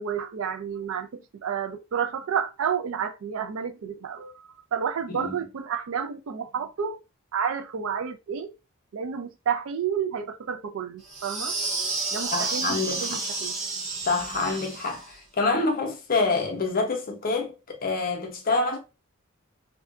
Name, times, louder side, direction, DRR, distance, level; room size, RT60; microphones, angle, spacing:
voice 1, 0.0-7.0 7.3-8.5 8.9-11.6 12.1-13.6, right 7 dB, 70° right, 0.4 m, -30 dB
sound 1, 11.1-15.1, right 3 dB, 20° right, 1.0 m, -31 dB
voice 2, 12.3-13.2 14.1-18.8, left 3 dB, 45° left, 0.6 m, -27 dB
2.6 x 2.3 x 2.3 m
head